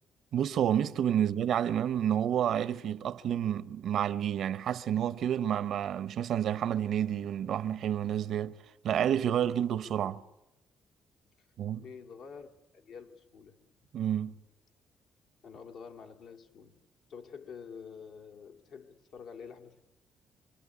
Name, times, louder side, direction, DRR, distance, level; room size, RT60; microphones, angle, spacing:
voice 1, 0.3-8.5 8.8-10.2 11.6-11.8 13.9-14.3, right 10 dB, 70° right, 1.0 m, -29 dB
voice 2, 11.8-12.5 12.7-13.7 15.4-16.8 17.1-19.8, left 6 dB, 80° left, 2.9 m, -48 dB
26.5 x 22.0 x 9.8 m
cardioid pair, 90°, 0 cm